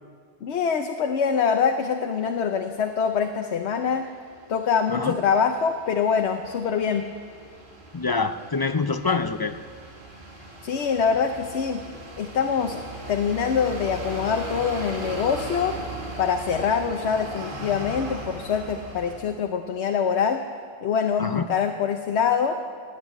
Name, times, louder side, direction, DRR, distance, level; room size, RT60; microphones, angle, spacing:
voice 1, 0.4-4.1 4.5-7.1 10.6-11.8 12.2-12.8 13.1-15.8 16.2-20.4 20.8-22.5, left 6 dB, 85° left, 6 dB, 1.0 m, -24 dB
sound 1, 2.3-2.5 3.1-19.2, right 2 dB, 50° right, 2.2 m, -39 dB
voice 2, 7.9-9.5 21.2-21.4, left 4 dB, 40° left, 10 dB, 0.3 m, -25 dB
18.0 x 8.7 x 9.0 m, 2.1 s
omnidirectional pair, 1.1 m